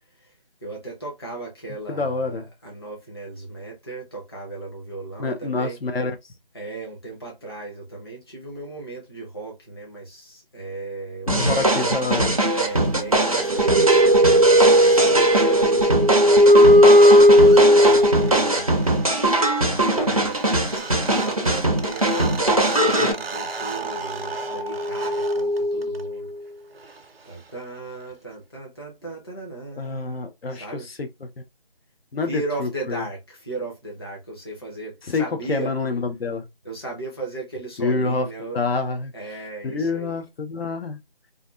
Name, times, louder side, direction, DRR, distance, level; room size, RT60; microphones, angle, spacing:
voice 1, 0.6-5.8 6.5-11.8 12.6-14.3 14.8-18.8 19.6-20.4 20.8-26.3 27.2-30.2 30.5-30.9 32.2-35.7 36.6-38.6 39.1-40.2, right 3 dB, 25° left, 0.6 m, -36 dB
voice 2, 1.9-2.4 5.2-6.1 11.3-12.3 29.8-30.7 31.0-31.1 32.1-33.0 35.1-36.4 37.8-38.3 38.5-39.1 39.6-41.0, left 3 dB, 90° left, 0.7 m, -26 dB
sound 1, 11.3-23.1, right 1 dB, 40° right, 0.4 m, -21 dB
sound 2, 13.2-18.6 20.5-20.6 20.7-26.2, equal, 85° right, 0.6 m, -17 dB
2.5 x 2.2 x 2.3 m
figure-of-eight pair, 170°, 29 cm